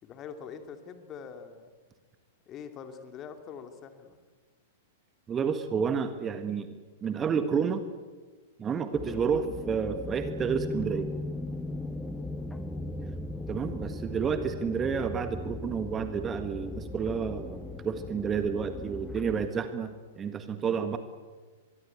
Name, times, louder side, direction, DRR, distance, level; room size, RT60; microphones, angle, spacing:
voice 1, 0.0-1.7 2.5-4.2 13.4-13.6, left 7 dB, 30° left, 2.6 m, -44 dB
voice 2, 5.3-6.7 7.0-7.8 8.6-11.1 13.5-21.0, right 6 dB, 20° right, 1.7 m, -30 dB
sound 1, 8.9-19.5, left 2 dB, 10° left, 1.4 m, -38 dB
24.0 x 23.0 x 8.2 m
figure-of-eight pair, 100°, 0 cm